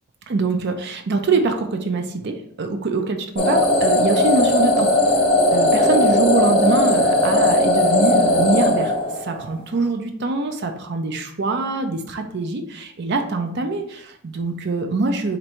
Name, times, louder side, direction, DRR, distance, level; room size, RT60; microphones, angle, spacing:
voice 1, 0.3-4.9 5.5-15.4, right 3 dB, 50° right, 5 dB, 0.5 m, -24 dB
sound 1, 3.4-9.5, left 1 dB, 25° left, 0.8 m, -17 dB
4.4 x 2.6 x 4.3 m, 0.66 s
head